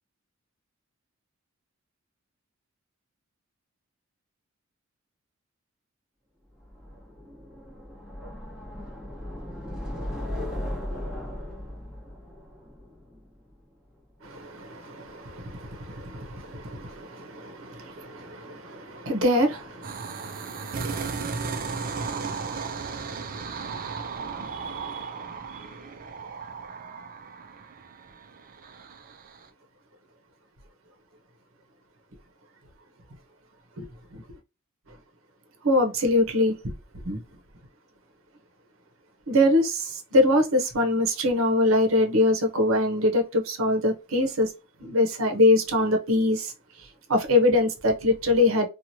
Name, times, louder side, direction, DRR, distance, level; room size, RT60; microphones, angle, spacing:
sound 1, 6.6-13.7, left 1 dB, 5° right, 1.0 m, -37 dB
voice 1, 14.2-25.1 33.8-33.9 34.1-34.2 35.6-36.5 37.0-37.2 39.3-44.5 44.8-46.5 47.1-48.7, left 1 dB, 65° right, 0.8 m, -24 dB
sound 2, 19.8-29.5, right 5 dB, 40° right, 0.4 m, -35 dB
2.9 x 2.4 x 2.7 m
head